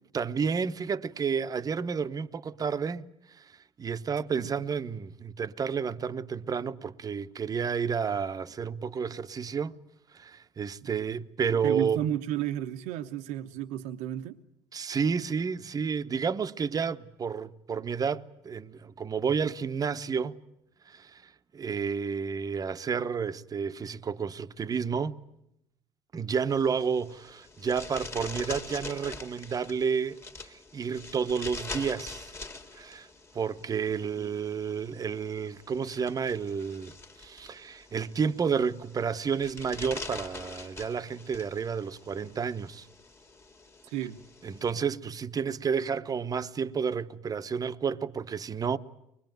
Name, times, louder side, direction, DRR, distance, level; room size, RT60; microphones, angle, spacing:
voice 1, 0.1-3.5 3.8-9.7 10.1-12.0 14.7-20.4 20.9-25.1 26.1-32.3 32.7-33.1 33.3-36.9 37.2-42.9 44.4-48.8, right 6 dB, 30° right, 1.0 m, -31 dB
voice 2, 11.6-14.4 34.2-34.3 43.9-44.2, right 12 dB, 80° right, 1.0 m, -32 dB
sound 1, 26.5-44.7, left 3 dB, 20° left, 2.1 m, -44 dB
24.0 x 21.0 x 9.3 m
supercardioid pair, 100°, 12 cm